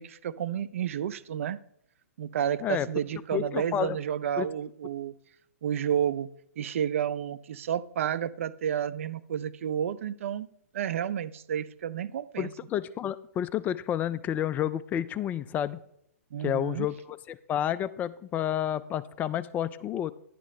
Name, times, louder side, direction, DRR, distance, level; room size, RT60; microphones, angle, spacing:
voice 1, 0.0-1.6 2.2-5.1 5.6-6.3 6.6-10.5 10.7-12.5 16.3-16.9, right 9 dB, 60° right, 15 dB, 0.5 m, -31 dB
voice 2, 3.3-4.0 4.4-4.5 12.4-15.8 16.4-20.1, left 10 dB, 20° left, 15 dB, 0.4 m, -30 dB
11.0 x 9.3 x 3.2 m, 0.71 s
hypercardioid pair, 120°, 8 cm